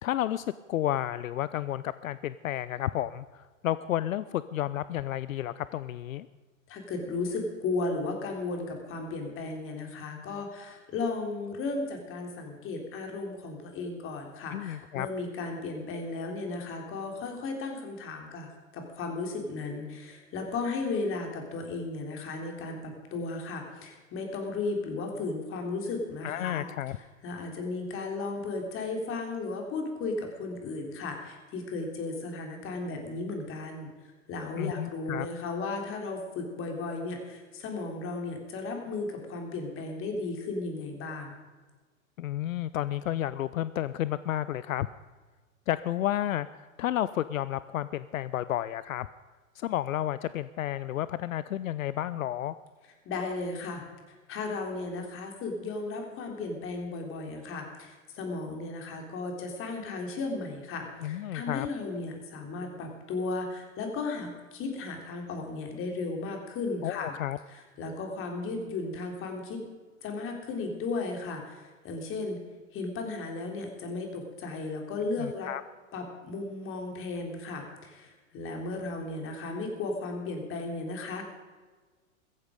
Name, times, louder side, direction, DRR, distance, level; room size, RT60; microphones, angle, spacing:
voice 1, 0.0-6.3 14.5-15.1 26.2-27.0 34.6-35.3 42.2-44.9 45.7-49.1 49.6-52.6 61.0-61.7 66.8-67.4 75.2-75.6, left 12 dB, 75° left, 16 dB, 0.6 m, -31 dB
voice 2, 6.7-26.6 27.2-41.3 53.1-67.1 67.5-69.6 70.0-72.4 72.7-75.5 75.9-81.2, left 3 dB, 30° left, 3 dB, 3.6 m, -35 dB
16.0 x 14.5 x 5.1 m, 1.4 s
hypercardioid pair, 120°, 41 cm